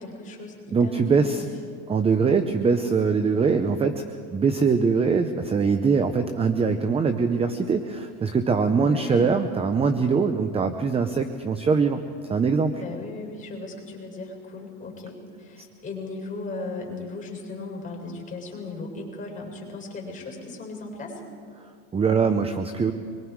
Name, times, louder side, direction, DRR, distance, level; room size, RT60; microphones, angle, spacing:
voice 1, 0.0-1.6 8.8-9.4 12.8-21.2, left 3 dB, 15° left, 0 dB, 6.9 m, -37 dB
voice 2, 0.7-1.5 1.9-4.0 4.3-12.0 12.3-12.7 21.9-22.9, right 5 dB, 15° right, 9 dB, 0.7 m, -22 dB
25.5 x 22.5 x 4.8 m, 2.2 s
supercardioid pair, 135°, 44 cm